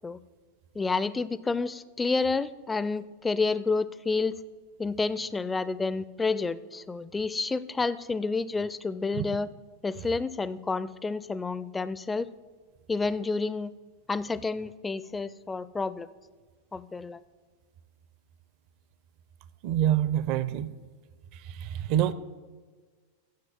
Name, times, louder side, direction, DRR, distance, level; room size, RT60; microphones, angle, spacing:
voice 1, 0.8-4.3 4.8-9.5 9.8-12.3 12.9-13.7 14.1-16.1 16.7-17.2, left 4 dB, 10° left, 17 dB, 0.4 m, -29 dB
voice 2, 19.6-20.7 21.3-22.1, right 11 dB, 45° right, 15 dB, 0.6 m, -26 dB
9.5 x 7.7 x 7.7 m, 1.5 s
figure-of-eight pair, 90°, 0 cm